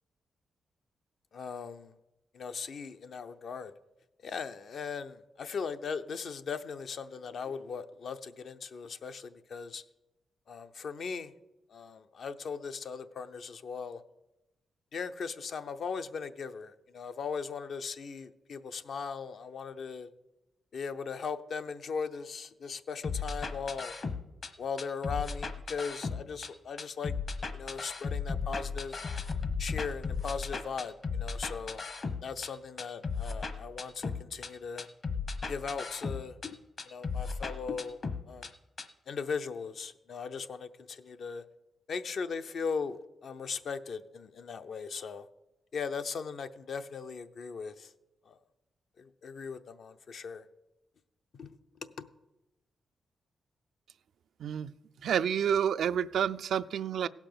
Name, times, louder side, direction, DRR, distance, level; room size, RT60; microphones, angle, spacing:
voice 1, 1.3-1.9 2.3-3.7 4.2-9.8 10.5-11.3 11.7-14.0 14.9-20.1 20.7-23.9 24.6-27.1 27.5-29.0 29.6-31.8 32.2-34.9 35.5-36.6 36.9-38.0 38.3-38.5 39.1-41.4 41.9-45.3 45.7-47.9 48.3-48.4 49.0-50.4 51.4-51.6 52.0-52.1, left 5 dB, 65° left, 9 dB, 0.7 m, -38 dB
sound 1, 23.0-24.5 24.8-26.5 26.8-32.5 32.8-34.5 34.8-36.5 36.8-38.5 38.8-38.9, left 4 dB, 45° left, 1.0 m, -35 dB
voice 2, 54.4-54.7 55.0-57.1, right 8 dB, 80° right, 14 dB, 0.3 m, -29 dB
16.5 x 5.9 x 6.8 m, 0.98 s
cardioid pair, 100°, 0 cm